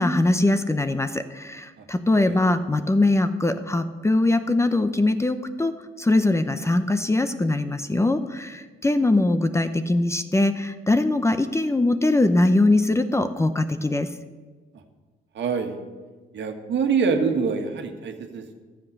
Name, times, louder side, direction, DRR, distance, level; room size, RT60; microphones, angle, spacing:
voice 1, 0.0-14.1, left 2 dB, 15° left, 10 dB, 0.7 m, -22 dB
voice 2, 15.3-15.8 16.3-18.5, right 5 dB, 65° right, 5 dB, 1.5 m, -25 dB
12.5 x 7.6 x 6.5 m, 1.4 s
cardioid pair, 90°, 20 cm